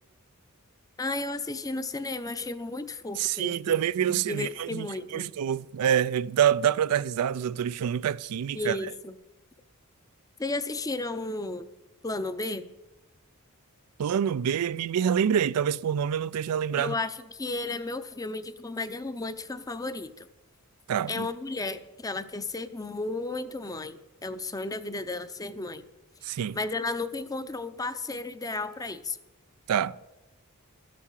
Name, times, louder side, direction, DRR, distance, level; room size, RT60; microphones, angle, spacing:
voice 1, 1.0-3.8 4.1-5.3 8.5-9.2 10.4-11.7 12.0-12.7 16.8-20.3 21.1-25.8 26.5-29.2, left 2 dB, 15° left, 0.6 m, -33 dB
voice 2, 3.2-4.9 5.1-8.8 14.0-16.9 20.9-21.3 26.2-26.6 29.7-30.0, right 9 dB, 90° right, 0.4 m, -26 dB
13.5 x 8.4 x 7.3 m
head